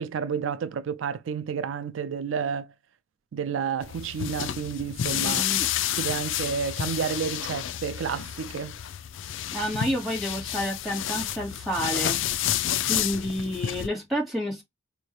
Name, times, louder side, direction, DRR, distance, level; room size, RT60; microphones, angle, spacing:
voice 1, 0.0-2.7 3.3-5.5 6.0-8.8, right 6 dB, 75° right, 0.4 m, -30 dB
sound 1, 3.8-13.9, left 11 dB, 70° left, 0.4 m, -30 dB
voice 2, 5.1-5.7 9.5-12.2 12.9-14.6, equal, ahead, 2.2 m, -29 dB
4.4 x 2.7 x 3.1 m
head